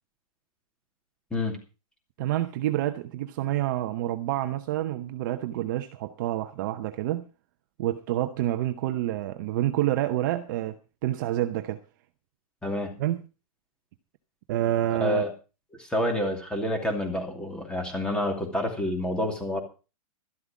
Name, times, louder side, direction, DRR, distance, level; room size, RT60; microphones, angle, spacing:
voice 1, 2.2-7.3 7.8-11.8 13.0-13.2 14.5-15.2, right 14 dB, 35° right, 0.8 m, -28 dB
voice 2, 12.6-12.9 15.0-15.3 15.8-19.6, left 1 dB, 5° left, 2.6 m, -28 dB
13.0 x 12.0 x 5.0 m
hypercardioid pair, 170°, 19 cm